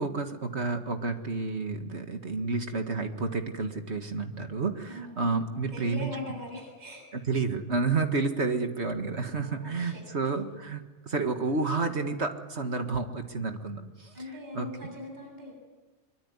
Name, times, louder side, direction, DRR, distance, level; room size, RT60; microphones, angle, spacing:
voice 1, 0.0-6.1 7.3-14.2 14.5-14.7, right 3 dB, 60° right, 6 dB, 2.1 m, -30 dB
voice 2, 4.9-5.3 5.7-7.0 9.4-10.0 14.1-15.5, left 2 dB, 35° right, 1 dB, 7.6 m, -41 dB
24.5 x 23.5 x 9.6 m, 1.3 s
omnidirectional pair, 1.3 m